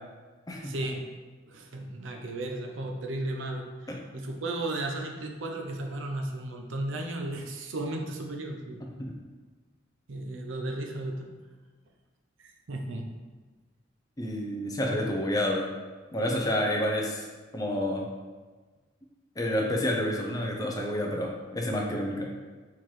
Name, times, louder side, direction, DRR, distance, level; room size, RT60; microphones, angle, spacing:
voice 1, 0.6-1.1 1.5-8.9 10.1-11.3 12.4-13.1, right 2 dB, 75° right, 2 dB, 0.6 m, -35 dB
voice 2, 14.2-15.7 16.1-17.3 17.5-18.1 19.4-22.3, left 1 dB, 20° left, 0 dB, 0.5 m, -29 dB
4.5 x 3.7 x 3.1 m, 1.3 s
head